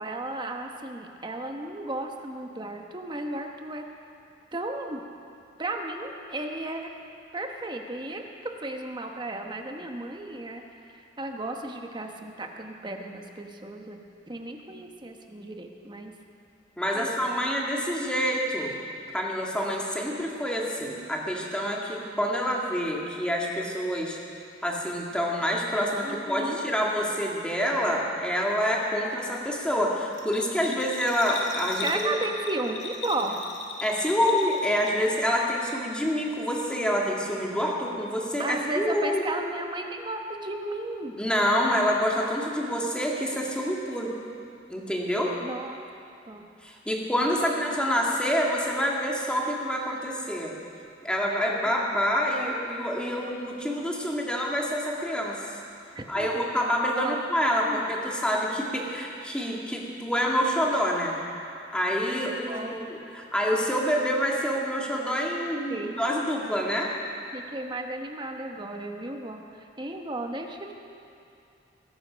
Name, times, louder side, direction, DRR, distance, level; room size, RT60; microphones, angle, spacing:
voice 1, 0.0-3.8 4.5-5.1 5.6-6.9 7.3-10.6 10.9-14.0 14.3-16.1 16.9-17.1 26.0-26.6 30.7-30.8 31.8-33.4 38.4-41.1 45.4-45.8 46.3-46.4 47.4-47.6 51.3-51.4 52.3-52.8 55.9-56.4 57.0-57.2 57.6-57.9 62.2-62.8 65.7-66.0 67.3-70.7, right 2 dB, 25° right, 3 dB, 1.1 m, -34 dB
voice 2, 16.8-18.7 19.1-24.2 24.6-32.2 33.8-39.2 41.2-44.1 44.7-45.3 46.6-50.5 51.0-55.4 56.1-61.2 61.7-66.9, equal, 5° left, -2 dB, 2.0 m, -27 dB
Bell, 30.1-35.2 35.5-36.3 36.6-36.7, left 4 dB, 70° left, 1.9 m, -38 dB
21.5 x 11.5 x 5.2 m, 2.5 s
head